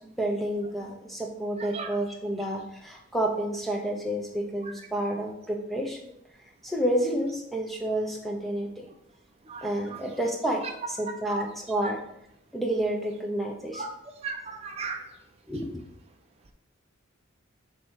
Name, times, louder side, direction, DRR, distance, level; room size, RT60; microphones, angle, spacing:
voice 1, 0.0-6.1 6.6-8.9 9.6-12.0 12.5-13.9 15.5-15.7, right 1 dB, ahead, 0 dB, 0.9 m, -30 dB
voice 2, 14.2-15.0, right 4 dB, 30° right, 2 dB, 0.6 m, -35 dB
7.6 x 3.1 x 4.8 m, 0.75 s
head